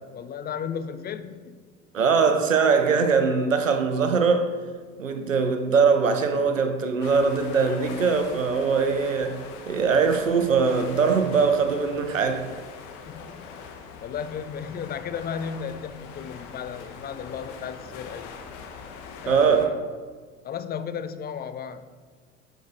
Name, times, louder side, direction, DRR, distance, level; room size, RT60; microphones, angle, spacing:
voice 1, 0.1-1.6 13.1-13.5 14.0-18.3 19.2-19.8 20.4-21.9, left 7 dB, 25° left, 0.6 m, -34 dB
voice 2, 1.9-4.5 5.0-12.5 19.3-19.7, right 5 dB, 85° right, 0.8 m, -22 dB
sound 1, 7.0-19.7, left 5 dB, 55° left, 1.1 m, -42 dB
10.0 x 5.2 x 3.9 m
figure-of-eight pair, 70°, 38 cm